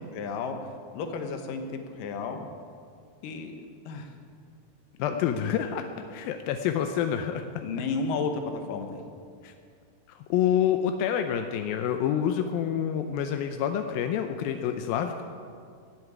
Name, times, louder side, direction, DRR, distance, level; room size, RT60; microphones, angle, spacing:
voice 1, 0.1-0.6 0.9-1.6 2.0-2.4 3.2-3.6 3.9-4.1 5.0-5.2 7.6-9.0, left 4 dB, 65° left, 5 dB, 2.4 m, -32 dB
voice 2, 5.0-7.6 9.4-9.5 10.1-15.2, left 9 dB, 80° left, 6 dB, 2.1 m, -28 dB
15.5 x 8.0 x 9.7 m, 2.2 s
omnidirectional pair, 4.9 m